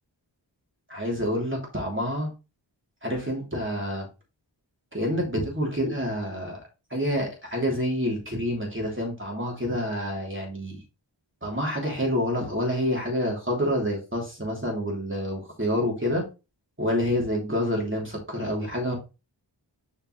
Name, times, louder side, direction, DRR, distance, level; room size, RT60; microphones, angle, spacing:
voice 1, 0.9-2.3 3.0-4.1 4.9-6.6 6.9-10.8 11.4-16.2 16.8-19.0, equal, 25° right, -1 dB, 3.1 m, -28 dB
7.4 x 5.1 x 3.1 m, 0.29 s
wide cardioid pair, 45°, 44 cm